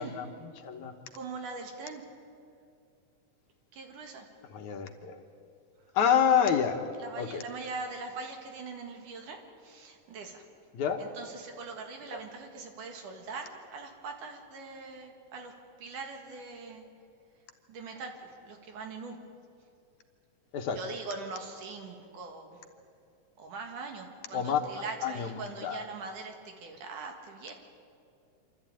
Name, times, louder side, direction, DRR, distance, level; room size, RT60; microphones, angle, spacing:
voice 1, 0.0-0.9 4.5-5.2 5.9-6.8 7.2-7.4 10.7-11.0 12.1-12.2 20.5-20.8 24.3-25.9, left 8 dB, 70° left, 5 dB, 2.4 m, -28 dB
voice 2, 1.1-2.0 3.7-4.3 7.0-10.4 11.0-15.5 15.8-16.8 17.7-19.2 20.8-22.6 23.4-27.5, right 4 dB, 70° right, 3 dB, 3.3 m, -42 dB
26.5 x 13.0 x 8.9 m, 2.4 s
omnidirectional pair, 3.8 m